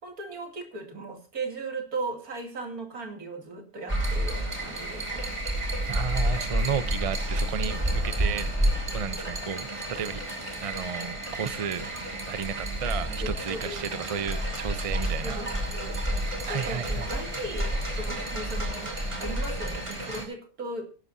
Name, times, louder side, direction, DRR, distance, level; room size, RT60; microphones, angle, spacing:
voice 1, 0.0-5.3 13.1-14.0 15.2-16.0 16.5-20.9, right 2 dB, 75° right, 3.0 m, -37 dB
sound 1, 3.9-20.3, right 1 dB, 20° right, 2.7 m, -30 dB
voice 2, 5.9-8.5 8.9-10.2 10.6-11.9 12.3-15.4 16.5-17.1, right 7 dB, 45° right, 0.4 m, -33 dB
20.5 x 11.0 x 2.7 m
omnidirectional pair, 1.6 m